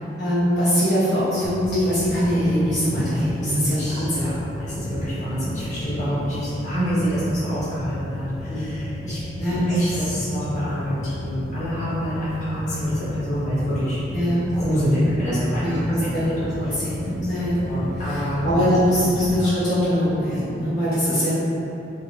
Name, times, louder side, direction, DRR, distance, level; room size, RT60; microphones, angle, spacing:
voice 1, 0.2-4.3 8.5-8.8 9.3-9.7 14.1-14.4 15.6-17.7 18.0-21.3, equal, 60° left, -15 dB, 1.1 m, -22 dB
sound 1, 1.4-19.3, left 1 dB, 20° left, 0.3 m, -34 dB
voice 2, 3.4-4.3 4.6-9.2 9.6-14.0 14.5-15.6 17.2-18.4 19.4-19.5, equal, 40° left, -13 dB, 1.5 m, -26 dB
4.1 x 3.0 x 2.5 m, 3.0 s
head